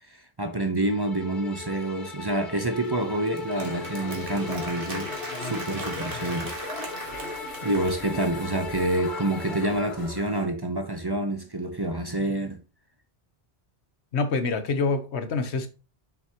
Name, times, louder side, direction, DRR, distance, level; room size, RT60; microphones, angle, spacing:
voice 1, 0.1-5.1 5.4-6.5 7.6-12.6, right 1 dB, 25° right, 0.8 m, -27 dB
Bowed string instrument, 0.8-10.0, left 3 dB, 50° left, 1.3 m, -38 dB
Applause, 2.6-8.4, right 2 dB, 55° right, 2.0 m, -40 dB
sound 1, 3.5-10.5, left 3 dB, 70° left, 1.6 m, -39 dB
voice 2, 14.1-15.7, left 4 dB, 85° left, 1.3 m, -26 dB
7.3 x 5.9 x 2.9 m
omnidirectional pair, 1.1 m